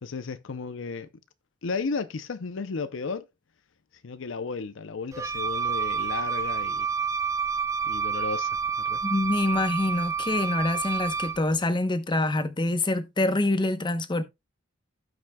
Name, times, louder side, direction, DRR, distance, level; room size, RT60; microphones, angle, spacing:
voice 1, 0.0-1.1 1.6-3.3 4.0-6.9 7.9-9.0, left 4 dB, 70° left, 0.6 m, -34 dB
Wind instrument woodwind instrument, 5.1-11.4, right 5 dB, 15° right, 0.4 m, -29 dB
voice 2, 9.0-14.2, left 2 dB, 25° left, 0.8 m, -26 dB
16.0 x 6.0 x 2.2 m
head